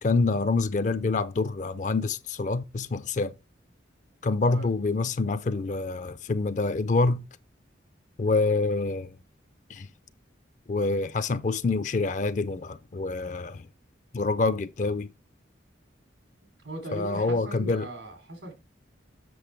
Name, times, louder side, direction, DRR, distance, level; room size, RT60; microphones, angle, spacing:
voice 1, 0.0-3.3 4.2-7.3 8.2-9.1 9.7-9.9 10.7-13.6 14.1-15.1 16.9-17.9, left 3 dB, 40° left, 0.4 m, -26 dB
voice 2, 16.6-18.5, right 1 dB, 85° right, 3.6 m, -39 dB
7.7 x 6.5 x 3.3 m
head